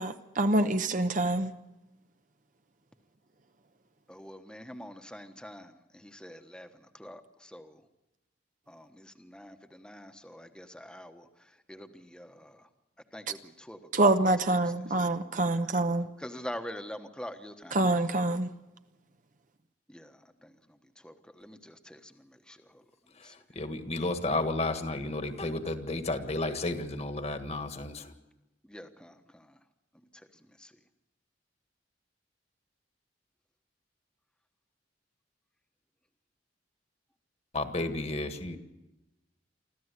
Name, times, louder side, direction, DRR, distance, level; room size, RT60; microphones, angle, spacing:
voice 1, 0.0-1.5 13.9-16.1 17.7-18.5, right 2 dB, 45° right, 0.9 m, -26 dB
voice 2, 4.1-6.7 6.9-7.8 8.7-11.3 11.7-12.7 13.1-14.1 14.9-15.0 15.4-15.6 16.2-18.0 19.9-20.5 21.0-22.8 23.2-23.3 28.7-29.5 30.6-30.7, equal, 5° left, 1.2 m, -45 dB
voice 3, 23.1-28.1 37.5-38.6, left 2 dB, 35° left, 1.7 m, -32 dB
25.5 x 14.5 x 8.2 m
head